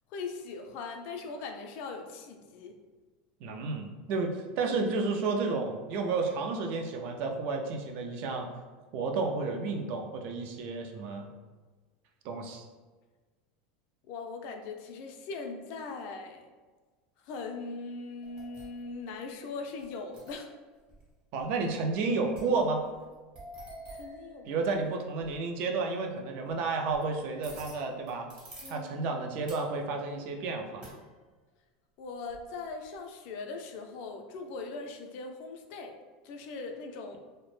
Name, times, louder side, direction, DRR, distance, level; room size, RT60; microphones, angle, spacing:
voice 1, 0.1-2.8 14.1-16.5 17.2-20.5 24.0-24.5 28.6-29.2 32.0-35.9 36.2-37.2, left 4 dB, 55° left, 3 dB, 0.3 m, -40 dB
voice 2, 3.4-8.5 8.9-11.3 12.2-12.6 21.3-22.8 24.4-28.3 28.7-30.8, right 4 dB, 55° right, 3 dB, 0.4 m, -31 dB
sound 1, 18.2-19.0 19.8-20.6 20.9-21.0 21.3-21.9 22.3-24.9 25.2-25.5 26.5-27.0 27.4-28.8 29.5-29.7 30.8-31.0 32.3-33.0, right 1 dB, 30° right, 0.9 m, -49 dB
2.0 x 2.0 x 3.0 m, 1.3 s
supercardioid pair, 140°, 4 cm